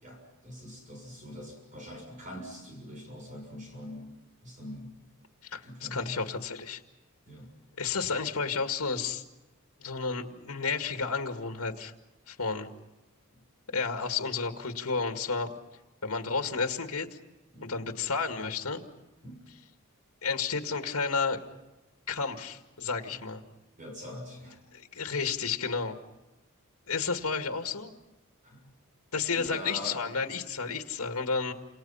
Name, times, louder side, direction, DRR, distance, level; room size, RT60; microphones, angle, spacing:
voice 1, 0.0-4.1 4.4-5.0 5.6-6.2 7.3-7.5 17.5-17.8 19.2-19.4 23.1-23.2 23.8-24.6 28.4-28.7 29.3-30.0, equal, 35° right, 2 dB, 6.7 m, -43 dB
voice 2, 5.4-6.8 7.8-9.2 9.8-11.9 12.3-12.7 13.7-15.5 16.0-17.1 17.6-18.8 20.2-21.4 22.1-23.4 24.7-26.0 26.9-27.9 29.1-31.5, left 5 dB, 75° left, 6 dB, 2.0 m, -31 dB
28.5 x 28.0 x 5.7 m, 1.1 s
head